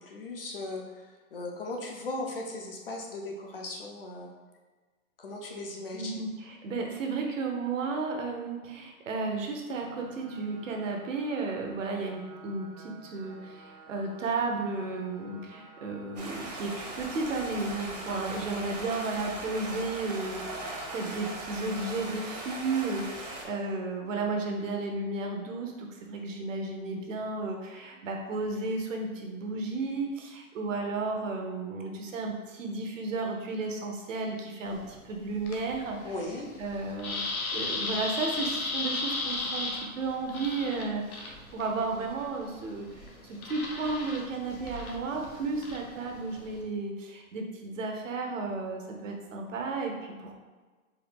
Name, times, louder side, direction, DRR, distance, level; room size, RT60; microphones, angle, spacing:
voice 1, 0.0-4.3 5.2-6.2 36.0-36.5, left 2 dB, 45° left, 1 dB, 0.5 m, -38 dB
voice 2, 5.9-36.1 36.6-50.4, right 3 dB, 60° right, 2 dB, 0.8 m, -33 dB
sound 1, 9.7-21.6, right 2 dB, 85° right, 1.1 m, -52 dB
Stream, 16.2-23.4, right 2 dB, 30° right, 0.5 m, -39 dB
sound 2, 34.6-46.6, left 3 dB, 80° left, 1.0 m, -37 dB
4.5 x 2.3 x 3.5 m, 1.3 s
hypercardioid pair, 170°, 43 cm